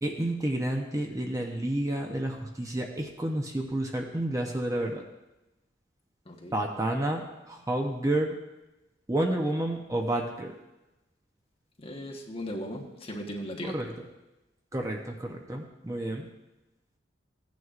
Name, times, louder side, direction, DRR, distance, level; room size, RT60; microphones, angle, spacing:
voice 1, 0.0-5.0 6.5-8.4 9.1-10.5 13.6-13.9 14.7-16.3, right 1 dB, 15° right, 2 dB, 0.7 m, -30 dB
voice 2, 6.3-6.6 11.8-13.8, equal, 30° left, 0 dB, 1.2 m, -37 dB
15.5 x 9.4 x 2.5 m, 1.0 s
head